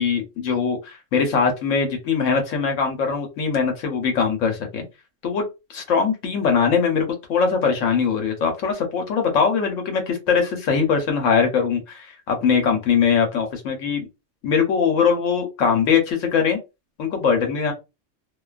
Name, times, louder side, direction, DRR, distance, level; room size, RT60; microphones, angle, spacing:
voice 1, 0.0-4.8 5.2-5.4 5.7-14.0 14.4-16.6 17.0-17.7, left 6 dB, 85° left, 4 dB, 1.1 m, -21 dB
2.5 x 2.2 x 2.4 m, 0.25 s
omnidirectional pair, 1.3 m